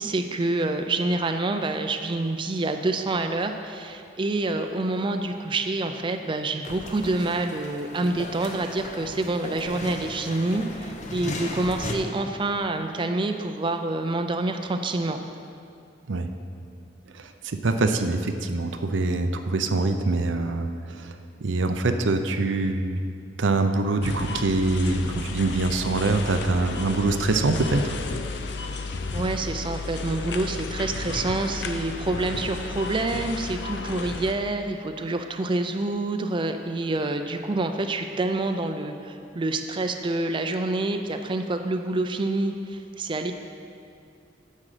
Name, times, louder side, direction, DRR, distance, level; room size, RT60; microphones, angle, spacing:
voice 1, 0.0-15.2 29.1-43.3, right 2 dB, 25° right, 6 dB, 0.4 m, -27 dB
sound 1, 6.6-11.9, left 2 dB, 40° left, 0.9 m, -36 dB
voice 2, 17.1-21.1 21.4-23.0 23.4-27.9, right 3 dB, 90° right, 7 dB, 0.6 m, -24 dB
sound 2, 24.0-34.3, left 3 dB, 65° left, 0.6 m, -33 dB
9.7 x 7.5 x 5.0 m, 2.4 s
head